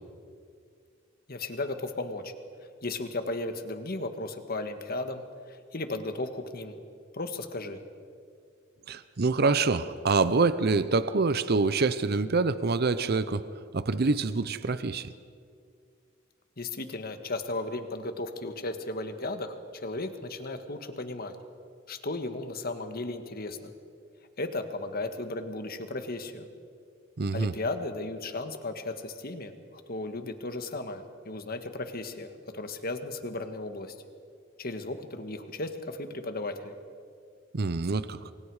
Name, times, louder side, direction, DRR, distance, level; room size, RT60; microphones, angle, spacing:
voice 1, 1.3-2.3 2.8-6.8 7.1-7.8 16.6-21.4 21.9-23.7 24.4-26.5 27.3-33.9 34.6-36.7, left 2 dB, 50° left, 8 dB, 1.6 m, -35 dB
voice 2, 8.9-13.4 13.7-15.1 27.2-27.5 37.5-38.3, right 3 dB, 55° right, 13 dB, 0.7 m, -26 dB
28.0 x 24.0 x 4.9 m, 2.3 s
head